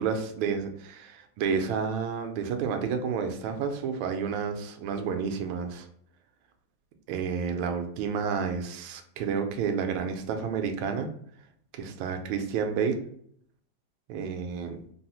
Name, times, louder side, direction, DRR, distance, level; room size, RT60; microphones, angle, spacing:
voice 1, 0.0-5.9 7.1-11.1 11.7-13.0 14.1-14.8, right 6 dB, 80° right, 6 dB, 1.4 m, -30 dB
3.8 x 2.0 x 2.7 m, 0.63 s
omnidirectional pair, 2.2 m